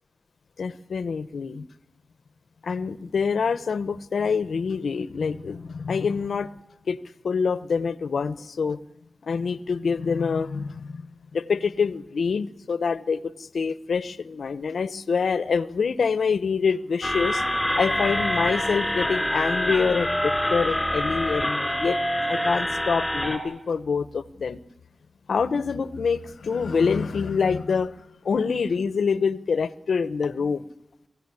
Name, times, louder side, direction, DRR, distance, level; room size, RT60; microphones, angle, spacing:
voice 1, 0.6-1.7 2.6-6.5 6.9-7.0 7.2-8.8 9.2-17.4 17.8-22.0 22.3-24.6 25.3-27.9 28.2-30.6, left 5 dB, 85° left, 16 dB, 0.9 m, -26 dB
sound 1, 17.0-23.4, equal, 10° left, 4.4 m, -26 dB
24.0 x 16.0 x 9.7 m, 0.89 s
cardioid pair, 65°, 0 cm